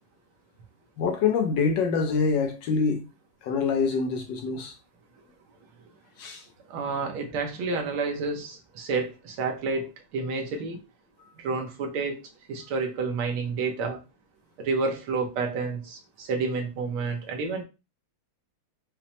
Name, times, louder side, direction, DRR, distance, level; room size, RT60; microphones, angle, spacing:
voice 1, 1.0-3.0 3.4-4.7 6.2-6.4, left 5 dB, 70° left, 1.2 m, -25 dB
voice 2, 6.7-10.8 11.4-12.2 12.5-14.0 14.6-17.6, right 4 dB, 90° right, 1.7 m, -29 dB
5.7 x 2.1 x 2.8 m
omnidirectional pair, 2.3 m